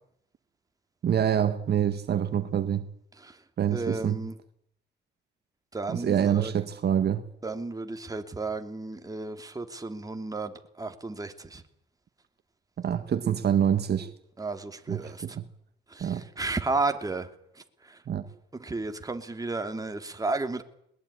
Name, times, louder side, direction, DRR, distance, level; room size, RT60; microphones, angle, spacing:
voice 1, 1.0-2.8 3.6-4.2 5.9-7.2 12.8-14.1 14.9-15.4 16.0-16.2 18.1-18.2, right 9 dB, 55° right, 1.7 m, -26 dB
voice 2, 3.7-4.3 5.7-6.5 7.4-11.6 14.4-15.2 15.9-17.3 17.8-18.0 18.6-20.6, right 3 dB, 20° right, 2.7 m, -33 dB
21.0 x 20.5 x 9.9 m
cardioid pair, 90°, 20 cm